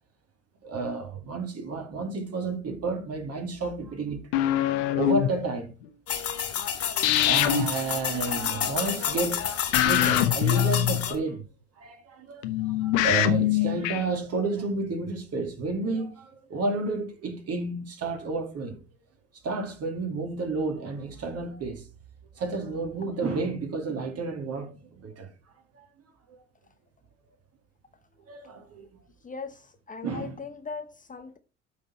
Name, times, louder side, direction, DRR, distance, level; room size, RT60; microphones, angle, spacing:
voice 1, 0.6-4.2 5.0-5.7 7.2-11.4 11.8-12.4 12.8-18.8 19.4-21.8 22.4-25.3 25.8-25.9 26.3-26.4 28.3-28.9 30.0-30.4, right 3 dB, 45° right, 2.5 m, -31 dB
sound 1, 4.3-5.3 7.0-7.7 9.7-11.3 12.4-14.0, left 12 dB, 65° left, 1.2 m, -23 dB
sound 2, 6.1-11.2, left 9 dB, 40° left, 2.0 m, -30 dB
voice 2, 29.2-31.4, left 4 dB, 20° left, 1.0 m, -39 dB
13.0 x 4.4 x 4.3 m
figure-of-eight pair, 65°, 35 cm